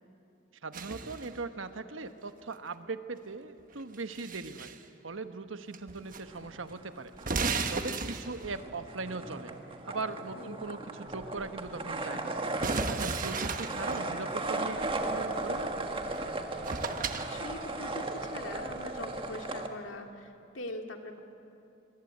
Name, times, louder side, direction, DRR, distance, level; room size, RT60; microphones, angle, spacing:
voice 1, 0.6-7.1 7.7-9.5 9.8-12.3 12.9-15.9, right 3 dB, 80° right, 9 dB, 1.3 m, -40 dB
sound 1, 0.7-1.4 3.8-4.8 5.7-6.2 6.5-6.6 7.2-8.6 12.6-14.1 16.2-16.3 16.6-17.3, right 4 dB, 45° right, 1.3 m, -34 dB
sound 2, 6.1-6.9 7.1-19.7, right 2 dB, 25° right, 1.6 m, -36 dB
voice 2, 16.9-21.2, left 2 dB, 80° left, 4 dB, 2.4 m, -43 dB
25.0 x 24.0 x 8.6 m, 2.7 s
head